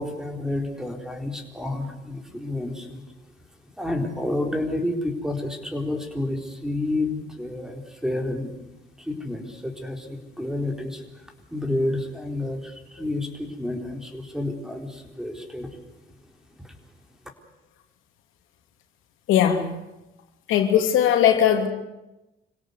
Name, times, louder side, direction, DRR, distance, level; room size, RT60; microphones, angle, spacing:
voice 1, 0.0-3.0 3.6-8.5 9.0-15.8 16.6-16.7, left 1 dB, 5° right, 4 dB, 4.2 m, -30 dB
voice 2, 19.3-19.7 20.5-21.7, left 9 dB, 90° left, 5 dB, 2.7 m, -19 dB
26.5 x 17.0 x 8.2 m, 0.95 s
cardioid pair, 90°, 20 cm